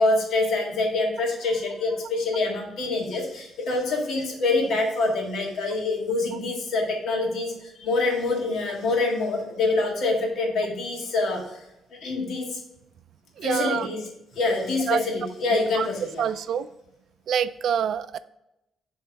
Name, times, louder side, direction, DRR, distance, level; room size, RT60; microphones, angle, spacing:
voice 1, 0.0-7.5 7.8-11.4 12.0-12.5 13.4-14.0 14.4-16.2, left 3 dB, 70° left, 1 dB, 1.7 m, -25 dB
voice 2, 13.4-13.9 14.9-15.0 15.7-15.9 16.2-16.7 17.3-18.2, right 8 dB, 70° right, 15 dB, 0.3 m, -26 dB
7.1 x 3.5 x 4.6 m, 0.90 s
cardioid pair, 90°, 0 cm